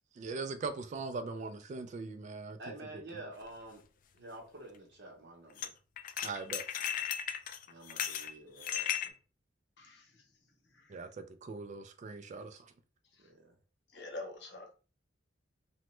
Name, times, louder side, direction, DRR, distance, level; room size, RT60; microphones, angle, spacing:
voice 1, 0.2-2.6 6.2-6.6 10.9-12.6, right 4 dB, 40° right, 0.3 m, -40 dB
voice 2, 2.6-3.8 4.1-5.7 7.7-9.1 13.2-13.5, right 2 dB, 65° right, 0.7 m, -49 dB
sound 1, 3.4-3.5 5.6-5.7 6.0-9.1, left 9 dB, 45° left, 0.3 m, -36 dB
voice 3, 9.8-10.2 10.7-11.0 13.9-14.7, left 2 dB, 65° left, 0.9 m, -46 dB
3.0 x 2.1 x 3.0 m
head